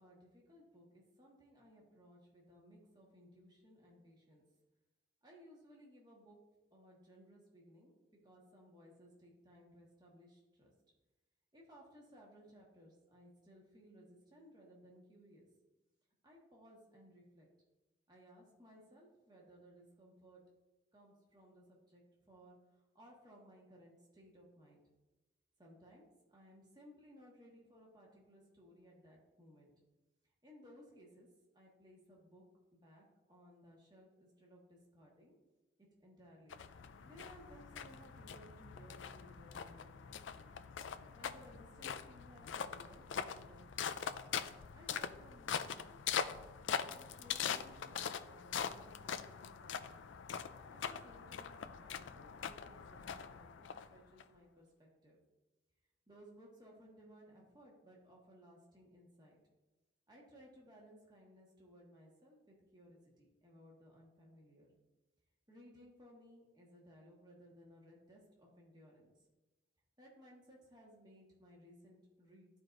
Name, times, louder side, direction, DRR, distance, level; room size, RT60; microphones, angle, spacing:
voice 1, 0.0-4.4 5.2-6.4 6.7-10.7 11.5-15.5 16.2-17.5 18.1-20.4 20.9-24.8 25.6-26.0 26.3-29.7 30.4-31.3 31.5-32.4 32.7-35.3 36.0-36.6 37.0-40.4 41.1-44.1 44.7-46.1 46.8-50.1 50.7-55.2 56.1-59.4 60.1-64.7 65.5-69.1 70.0-72.5, equal, 20° right, -3 dB, 1.4 m, -61 dB
sound 1, 36.5-54.2, left 7 dB, 75° left, 0.4 m, -43 dB
13.0 x 4.5 x 2.6 m, 1.1 s
head